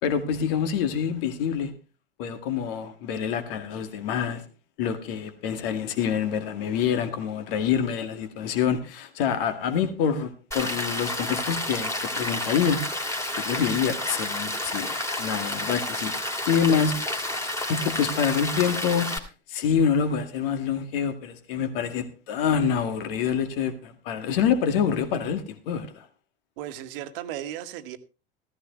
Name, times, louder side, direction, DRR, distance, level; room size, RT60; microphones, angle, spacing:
voice 1, 0.0-1.7 2.2-4.4 4.8-12.8 13.3-16.1 16.5-17.0 17.7-19.2 19.5-26.1, left 7 dB, 60° left, 2.0 m, -26 dB
Rain, 10.5-19.2, left 1 dB, 10° left, 2.5 m, -30 dB
voice 2, 26.6-28.0, right 12 dB, 60° right, 1.4 m, -35 dB
15.0 x 14.0 x 3.1 m
figure-of-eight pair, 75°, 31 cm